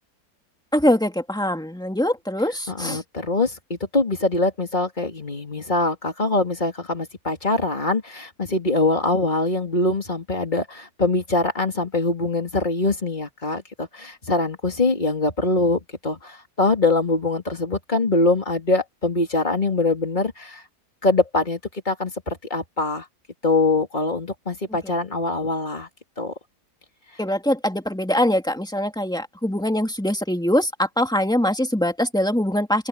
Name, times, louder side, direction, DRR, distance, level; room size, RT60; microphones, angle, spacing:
voice 1, 0.7-3.0 24.8-24.9 27.2-32.9, left 1 dB, ahead, 2.4 m, -23 dB
voice 2, 2.7-20.6 21.0-21.6 21.8-23.0 23.4-25.9 26.2-26.3, left 2 dB, 30° left, 3.1 m, -23 dB
open air
omnidirectional pair, 1.7 m